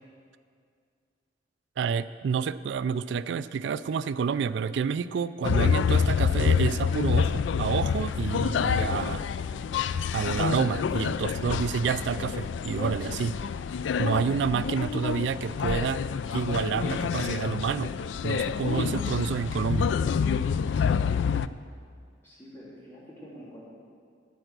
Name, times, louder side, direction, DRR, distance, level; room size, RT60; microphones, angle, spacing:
voice 1, 1.8-9.3 10.1-13.4 14.0-16.0 16.3-17.9 18.2-19.9, right 6 dB, 65° right, 15 dB, 0.3 m, -29 dB
sound 1, 5.4-21.5, left 6 dB, 75° left, 0.3 m, -27 dB
voice 2, 22.2-23.7, equal, 10° left, -8 dB, 3.5 m, -46 dB
10.5 x 8.9 x 6.7 m, 2.2 s
head